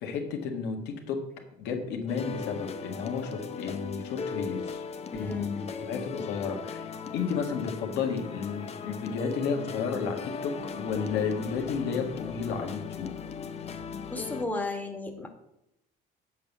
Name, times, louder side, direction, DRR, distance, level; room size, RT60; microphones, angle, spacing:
voice 1, 0.0-1.2 1.6-4.8 5.1-13.1, left 6 dB, 85° left, 2 dB, 1.8 m, -32 dB
sound 1, 2.1-14.4, left 5 dB, 40° left, 0.8 m, -38 dB
voice 2, 5.1-5.5 14.1-15.3, left 2 dB, 10° left, 3 dB, 1.5 m, -34 dB
7.7 x 5.5 x 7.2 m, 0.83 s
cardioid pair, 110°, 17 cm